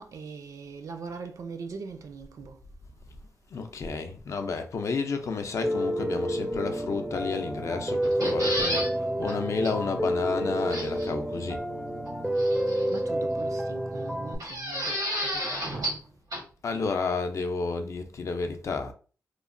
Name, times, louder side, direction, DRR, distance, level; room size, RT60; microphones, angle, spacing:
voice 1, 0.0-2.6 12.7-16.0, right 5 dB, 65° right, 0.4 m, -42 dB
voice 2, 3.5-11.6 16.6-18.9, left 4 dB, 55° left, 0.4 m, -31 dB
Piano, 5.6-14.4, equal, 5° right, 0.4 m, -29 dB
sound 1, 8.0-8.9 9.3-9.4 9.6-9.7 10.7-11.1 12.4-13.0 14.4-16.0 16.3-16.4, equal, 85° right, 1.2 m, -31 dB
2.9 x 2.1 x 2.4 m
wide cardioid pair, 110°, 6 cm